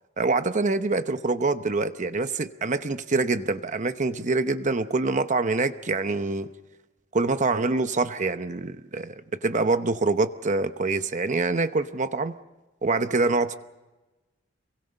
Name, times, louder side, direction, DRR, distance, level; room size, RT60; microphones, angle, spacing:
voice 1, 0.2-6.5 7.1-9.1 9.4-12.3 12.8-13.5, right 3 dB, 40° right, 10 dB, 0.8 m, -25 dB
27.0 x 23.5 x 5.4 m, 1.1 s
head